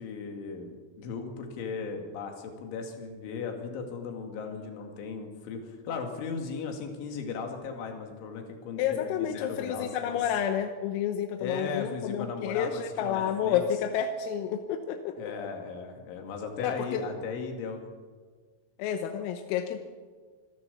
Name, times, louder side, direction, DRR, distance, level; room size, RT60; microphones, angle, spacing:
voice 1, 0.0-10.2 11.4-13.6 15.2-17.8, left 5 dB, 70° left, 3 dB, 4.7 m, -37 dB
voice 2, 8.8-15.3 16.6-17.0 18.8-19.8, left 9 dB, 85° left, 6 dB, 3.7 m, -30 dB
25.5 x 14.5 x 7.1 m, 1.5 s
omnidirectional pair, 5.9 m